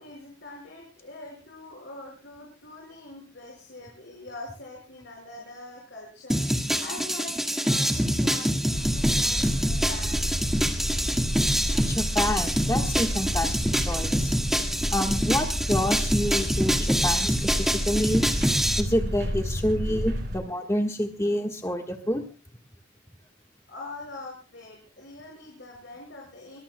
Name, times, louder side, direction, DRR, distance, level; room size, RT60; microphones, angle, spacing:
voice 1, 0.0-6.4 6.8-10.2 23.7-26.6, left 2 dB, 65° left, -1 dB, 5.3 m, -43 dB
sound 1, 6.3-18.8, equal, ahead, 1.6 m, -26 dB
sound 2, 8.7-20.4, equal, 55° right, 5.0 m, -30 dB
voice 2, 11.9-14.3 14.9-18.2 18.8-22.2, left 1 dB, 15° left, 3 dB, 1.4 m, -28 dB
23.0 x 21.0 x 2.2 m, 0.33 s
head